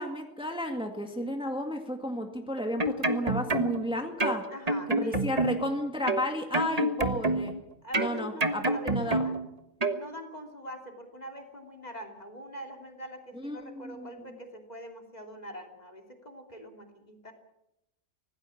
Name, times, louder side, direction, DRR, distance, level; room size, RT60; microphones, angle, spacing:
voice 1, 0.0-4.4 4.9-7.5 8.0-9.2 13.4-13.6 13.8-14.1, left 1 dB, 5° right, 4 dB, 2.0 m, -32 dB
sound 1, 2.6-3.9 4.2-5.7 6.1-7.6 7.9-9.5 9.8-10.0, right 2 dB, 30° right, 1.5 m, -28 dB
voice 2, 4.5-5.6 7.8-9.3 9.9-17.3, equal, 30° left, 3 dB, 3.2 m, -44 dB
25.0 x 18.0 x 7.3 m, 0.88 s
omnidirectional pair, 1.3 m